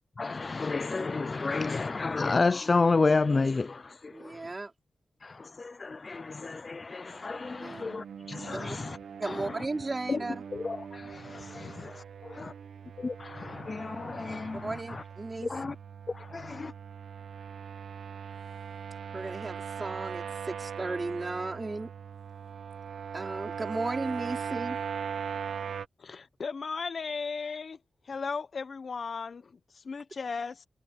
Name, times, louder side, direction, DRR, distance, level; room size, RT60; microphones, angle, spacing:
voice 1, 0.2-4.5 5.2-9.0 9.2-9.5 10.1-10.2 10.5-12.0 12.4-12.5 13.0-15.0 15.5-15.7 16.1-16.7, left 3 dB, 40° left, 0.5 m, -31 dB
voice 2, 4.1-4.7 7.6-7.8 8.5-8.8 9.2-10.4 14.5-15.5 19.1-21.9 23.1-24.8, right 3 dB, 30° right, 4.9 m, -35 dB
sound 1, 7.1-25.9, right 7 dB, 90° right, 1.0 m, -40 dB
voice 3, 26.0-30.7, left 5 dB, 55° left, 1.2 m, -36 dB
wide cardioid pair, 90°, 0 cm